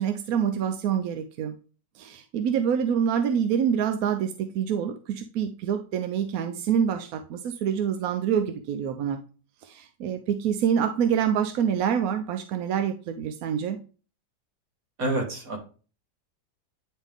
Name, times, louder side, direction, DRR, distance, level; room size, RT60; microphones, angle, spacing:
voice 1, 0.0-1.5 2.0-9.2 9.6-13.8, right 8 dB, 70° right, 6 dB, 0.9 m, -26 dB
voice 2, 15.0-15.6, right 1 dB, 55° right, 1 dB, 2.1 m, -27 dB
9.8 x 3.7 x 3.5 m, 0.37 s
omnidirectional pair, 1.9 m